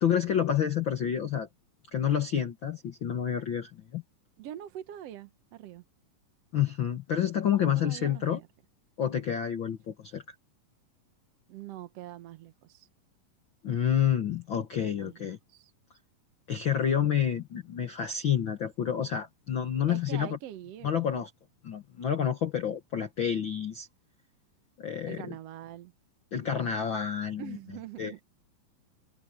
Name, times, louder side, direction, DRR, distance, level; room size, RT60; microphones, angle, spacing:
voice 1, 0.0-1.5 1.9-4.0 6.5-8.4 9.0-10.2 13.6-15.4 16.5-20.4 20.8-21.3 21.6-23.9 24.8-25.2 26.3-27.6 28.0-28.1, left 9 dB, 65° left, 1.2 m, -29 dB
voice 2, 4.4-5.8 7.7-8.5 11.5-12.9 14.7-15.2 15.5-15.7 16.5-16.8 19.9-21.1 25.1-25.9 27.4-28.2, right 12 dB, 70° right, 1.5 m, -44 dB
omnidirectional pair, 4.1 m